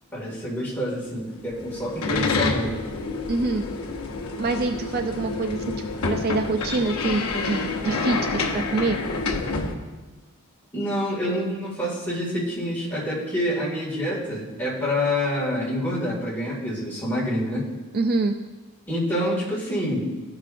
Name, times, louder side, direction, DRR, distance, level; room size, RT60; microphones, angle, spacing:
voice 1, 0.1-2.8 10.7-17.7 18.9-20.1, left 1 dB, 10° left, -7 dB, 2.0 m, -27 dB
sound 1, 1.4-9.7, left 3 dB, 75° left, 0.8 m, -28 dB
voice 2, 3.3-3.6 4.4-9.0 17.9-18.3, right 3 dB, 45° right, 6 dB, 0.3 m, -26 dB
13.0 x 4.9 x 2.5 m, 1.2 s
head